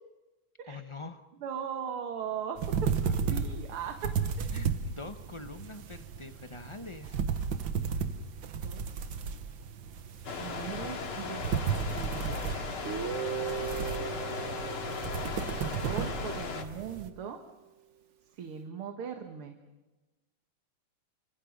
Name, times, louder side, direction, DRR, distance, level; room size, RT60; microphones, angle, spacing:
voice 1, 0.7-1.3 3.1-3.6 4.5-7.2, left 3 dB, 40° left, 8 dB, 0.4 m, -45 dB
voice 2, 1.4-2.9 3.3-4.1 4.4-4.5 8.6-9.2 10.4-12.8 15.7-17.4 18.3-19.6, right 7 dB, 80° right, 5 dB, 2.4 m, -39 dB
sound 1, 2.6-17.1, right 6 dB, 65° right, 1.8 m, -34 dB
sound 2, 10.2-16.6, left 4 dB, 80° left, 2.9 m, -37 dB
Guitar, 12.9-16.7, right 7 dB, 45° right, 1.0 m, -38 dB
30.0 x 25.0 x 5.3 m, 1.1 s
omnidirectional pair, 2.4 m